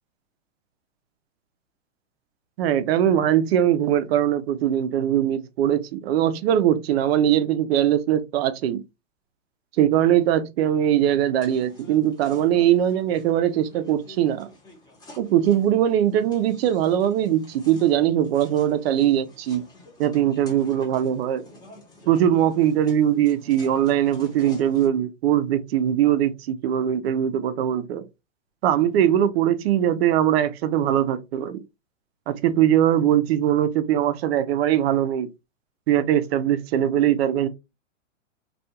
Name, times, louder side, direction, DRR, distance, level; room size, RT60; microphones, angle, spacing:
voice 1, 2.6-8.8 9.8-14.5 15.2-19.6 20.0-21.4 22.1-28.0 28.6-31.6 32.3-35.3 35.9-37.5, right 10 dB, 55° right, 0.6 m, -21 dB
sound 1, 11.4-24.9, left 2 dB, 10° left, 0.8 m, -49 dB
2.4 x 2.3 x 2.8 m
hypercardioid pair, 120°, 38 cm